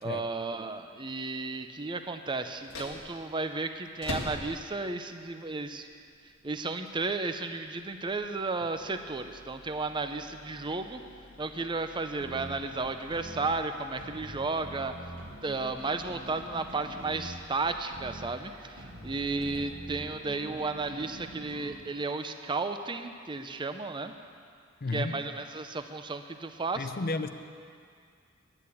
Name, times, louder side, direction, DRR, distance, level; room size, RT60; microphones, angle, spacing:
voice 1, 0.0-5.9 6.4-11.0 11.4-14.9 15.4-24.1 24.9-26.9, right 3 dB, 25° right, 8 dB, 0.6 m, -33 dB
sound 1, 2.5-20.3, left 1 dB, 85° left, 1.7 m, -48 dB
sound 2, 12.2-21.8, right 1 dB, 60° right, 1.5 m, -45 dB
voice 2, 24.8-25.2 26.8-27.3, left 3 dB, 45° left, 10 dB, 0.6 m, -32 dB
10.5 x 9.9 x 8.3 m, 2.2 s
head